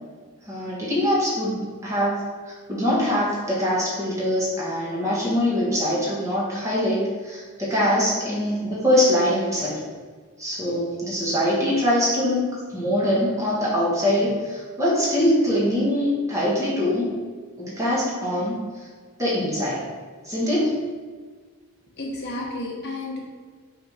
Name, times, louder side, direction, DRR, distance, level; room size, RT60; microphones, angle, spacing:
voice 1, 0.5-9.8 10.4-17.1 17.6-18.6 19.2-19.8 20.2-20.8, left 1 dB, 15° right, -7 dB, 1.8 m, -23 dB
voice 2, 22.0-23.2, left 2 dB, 50° left, -3 dB, 1.2 m, -31 dB
5.9 x 3.6 x 5.6 m, 1.5 s
head